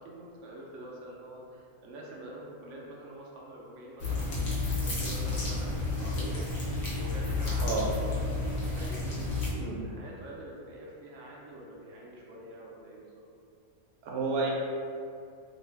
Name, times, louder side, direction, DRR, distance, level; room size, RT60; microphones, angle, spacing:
voice 1, 0.0-13.2, right 1 dB, 65° right, -2 dB, 0.9 m, -46 dB
sound 1, 4.0-9.5, left 3 dB, 65° left, 1.2 m, -31 dB
voice 2, 14.0-14.5, right 3 dB, 85° right, -3 dB, 1.1 m, -30 dB
2.9 x 2.6 x 3.3 m, 2.3 s
omnidirectional pair, 1.5 m